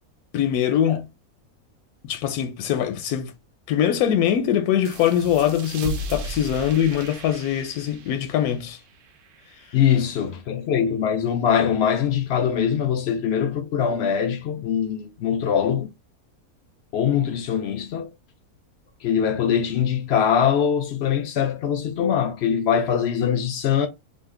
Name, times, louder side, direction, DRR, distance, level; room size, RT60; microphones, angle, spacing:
voice 1, 0.3-1.0 2.0-3.3 3.7-8.8, left 10 dB, 90° left, 1.1 m, -22 dB
sound 1, 4.8-10.1, right 3 dB, 65° right, 0.9 m, -36 dB
voice 2, 9.7-15.9 16.9-18.1 19.0-23.9, left 8 dB, 65° left, 0.6 m, -22 dB
2.8 x 2.5 x 3.6 m
omnidirectional pair, 1.5 m